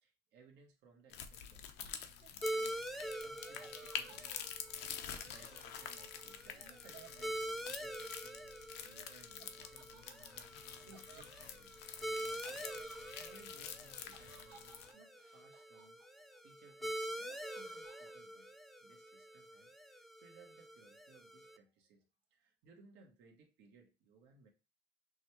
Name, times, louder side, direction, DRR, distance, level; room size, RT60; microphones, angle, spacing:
voice 1, 0.0-4.3 5.2-18.5 18.8-24.5, right 4 dB, 90° right, 2 dB, 1.2 m, -64 dB
sound 1, 1.1-14.9, left 8 dB, 90° left, 0.7 m, -48 dB
Laughter, 1.9-8.0 9.4-16.4 16.7-18.1, right 7 dB, 75° right, 1.0 m, -63 dB
sound 2, 2.4-21.6, right 1 dB, ahead, 0.4 m, -46 dB
6.2 x 2.3 x 3.0 m, 0.30 s
cardioid pair, 110°, 17 cm